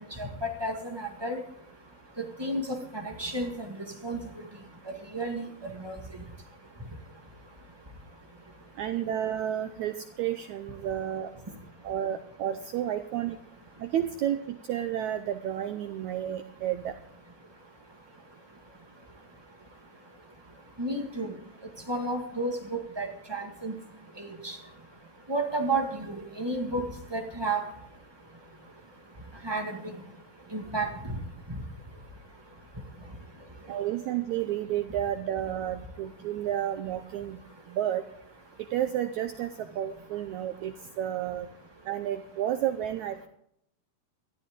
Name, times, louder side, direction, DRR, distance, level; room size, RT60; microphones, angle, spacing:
voice 1, 0.2-1.4 2.2-3.8 4.0-4.2 5.1-5.5 5.8-5.9 20.8-21.3 21.9-23.7 24.2-24.6 25.3-26.8 27.1-27.6 29.4-29.8 30.5-30.9, right 2 dB, 25° right, 1 dB, 0.5 m, -31 dB
voice 2, 8.8-11.3 11.8-13.4 13.8-16.9 33.7-37.4 37.7-38.0 38.7-41.5 41.9-43.3, right 11 dB, 75° right, 9 dB, 1.7 m, -31 dB
19.0 x 13.5 x 3.7 m, 0.72 s
omnidirectional pair, 4.1 m